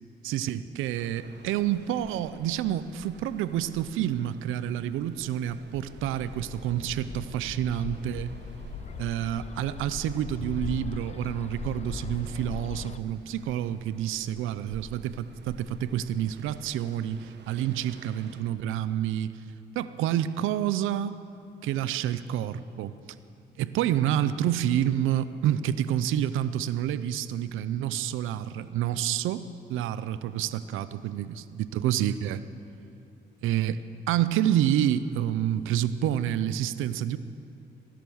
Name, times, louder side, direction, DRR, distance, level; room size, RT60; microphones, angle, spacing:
voice 1, 0.2-8.3 9.0-19.4 19.7-21.2 21.6-22.9 23.6-32.4 33.4-37.2, right 11 dB, 90° right, 14 dB, 0.6 m, -28 dB
sound 1, 1.0-18.4, right 5 dB, 60° right, 1.2 m, -49 dB
Bird, 5.7-13.0, left 7 dB, 35° left, 0.4 m, -40 dB
16.0 x 11.0 x 7.1 m, 2.6 s
cardioid pair, 90°, 20 cm